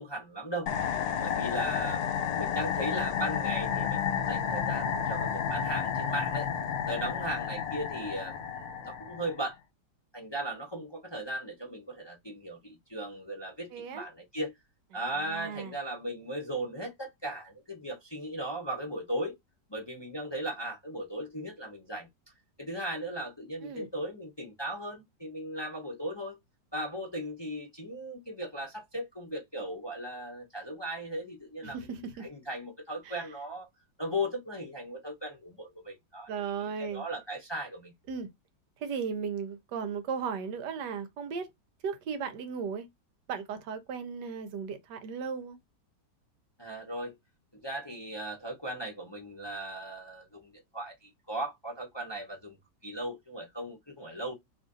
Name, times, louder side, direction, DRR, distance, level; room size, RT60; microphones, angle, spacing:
voice 1, 0.0-6.5 6.9-9.6 10.1-14.5 14.9-19.4 19.7-22.1 22.6-26.4 26.7-33.7 34.0-36.3 36.9-37.9 46.6-47.1 47.5-52.6 52.8-54.3, right 1 dB, 20° left, 0.7 m, -37 dB
sound 1, 0.7-9.5, left 7 dB, 70° left, 1.1 m, -31 dB
voice 2, 13.7-14.1 15.2-15.7 23.6-23.9 31.6-32.3 33.0-33.2 36.3-37.0 38.1-38.3 38.8-41.5 41.8-42.9 43.3-45.6, right 6 dB, 80° right, 1.4 m, -36 dB
3.1 x 2.5 x 3.7 m
omnidirectional pair, 1.8 m